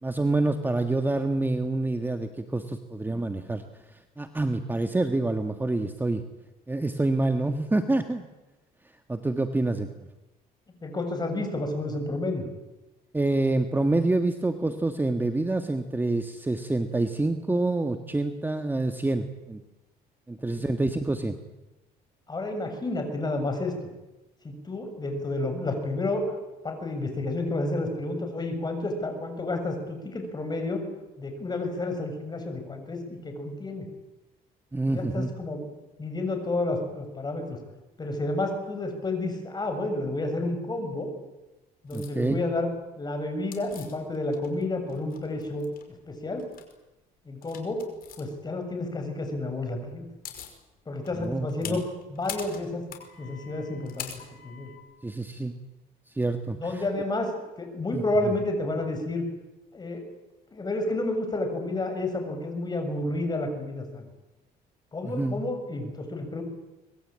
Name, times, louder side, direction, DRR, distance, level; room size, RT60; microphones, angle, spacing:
voice 1, 0.0-3.6 4.2-6.2 6.7-8.2 9.1-9.9 13.1-19.6 20.3-21.4 34.7-35.3 41.9-42.4 51.2-51.8 55.0-55.6 56.1-56.6 57.9-58.0 65.0-65.4, right 2 dB, 10° right, 7 dB, 1.6 m, -27 dB
voice 2, 10.8-12.4 20.6-20.7 22.3-23.7 24.4-26.4 26.6-30.8 31.2-33.9 34.9-35.7 36.0-37.6 38.0-41.1 41.8-42.7 43.0-45.7 46.1-46.5 47.3-47.8 48.2-50.1 50.9-51.8 52.1-52.8 53.2-54.1 54.4-54.7 56.5-57.3 57.6-59.2 59.7-60.0 60.5-64.1 64.9-66.4, left 2 dB, 25° left, 5 dB, 6.9 m, -30 dB
sound 1, 41.9-42.1 43.5-44.6 44.9-45.8 46.4-46.7 47.4-48.2 49.7-49.8 50.0-50.6 51.0-54.8, left 9 dB, 60° left, 5.1 m, -42 dB
24.5 x 21.5 x 8.9 m, 1.0 s
cardioid pair, 110°, 17 cm